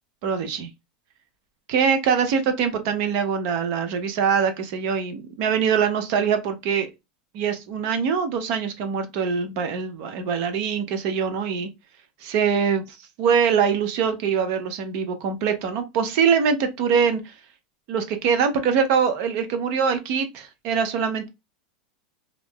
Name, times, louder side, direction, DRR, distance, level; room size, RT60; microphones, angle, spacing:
voice 1, 0.2-0.7 1.7-6.9 7.3-11.7 12.2-12.8 13.2-17.2 17.9-21.3, right 6 dB, 55° right, 0.7 m, -23 dB
2.5 x 2.1 x 3.3 m
supercardioid pair, 130°, 5 cm